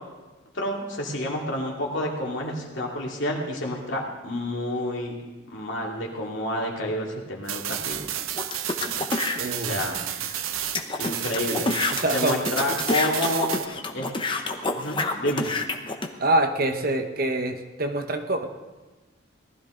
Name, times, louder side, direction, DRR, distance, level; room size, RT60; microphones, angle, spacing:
voice 1, 0.5-5.1 5.5-8.1 9.6-10.0 11.0-11.7 12.1-13.5 13.9-14.1 14.7-15.5, left 1 dB, 65° left, -1 dB, 2.6 m, -29 dB
sound 1, 7.5-13.7, right 11 dB, 90° right, 0.7 m, -31 dB
sound 2, 8.3-9.4 10.0-10.1 10.3-10.4 10.7-16.1, left 3 dB, 25° left, 0.8 m, -28 dB
voice 2, 9.3-9.8 11.9-12.4 16.2-18.5, right 1 dB, 45° right, 6 dB, 0.9 m, -25 dB
19.0 x 12.5 x 3.8 m, 1.2 s
head